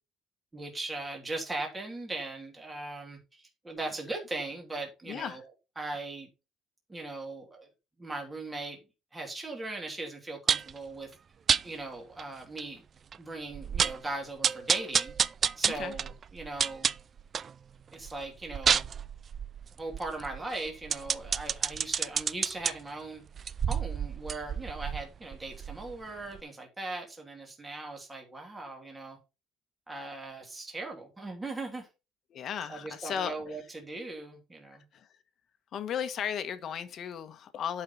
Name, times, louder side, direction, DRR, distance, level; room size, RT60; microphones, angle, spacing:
voice 1, 0.5-5.5 5.8-6.3 6.9-7.7 8.0-8.8 9.1-11.1 11.6-12.8 13.2-15.1 15.6-16.9 17.9-18.9 19.8-23.2 23.7-29.2 29.9-31.9 32.7-34.8, right 2 dB, 15° right, 3.0 m, -39 dB
voice 2, 5.1-5.4 15.6-16.0 32.3-33.3 34.9-35.1 35.7-37.8, left 8 dB, 50° left, 1.4 m, -35 dB
sound 1, 10.5-10.8 11.5-11.6 12.2-12.3 12.6-12.7 13.1-13.2 13.5-14.0 14.4-17.5 17.9-22.7 23.3-26.0 26.3-26.4, right 7 dB, 35° right, 0.4 m, -29 dB
11.5 x 5.7 x 4.3 m
cardioid pair, 140°, 0 cm